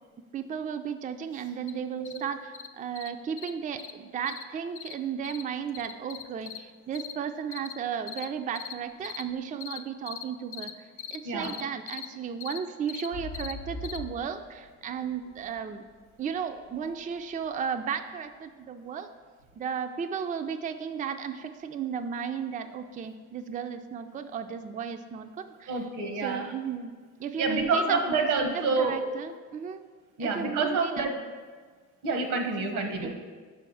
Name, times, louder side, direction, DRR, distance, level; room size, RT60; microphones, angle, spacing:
voice 1, 0.3-10.7 11.1-15.9 16.2-19.1 19.6-25.7 26.2-26.9 27.2-28.3 28.5-29.8 30.2-31.1 32.7-33.1, right 7 dB, 25° right, 8 dB, 0.3 m, -34 dB
sound 1, 1.7-1.8 2.1-2.2 2.5-2.7 3.0-3.1 3.4-3.5 3.8-3.9 4.3-4.4 4.8-4.9 5.2-5.4 5.7-6.6 6.9-7.1 7.5-7.7 8.1-8.3 8.6-8.7 9.0-9.2 9.6-9.8 10.1-10.2 10.5-10.7 11.0-11.2 11.4-11.6 11.9-12.1 12.4-12.6 12.9-13.1 13.3-13.5 13.8-14.0, left 9 dB, 45° left, 0.4 m, -39 dB
sound 2, 13.1-17.0 17.5-17.6, left 3 dB, 80° left, 0.7 m, -42 dB
voice 2, 25.7-26.5 27.4-29.0 30.2-31.1 32.0-33.1, right 3 dB, 85° right, 4 dB, 1.1 m, -28 dB
5.4 x 4.7 x 6.2 m, 1.5 s
cardioid pair, 90°, 30 cm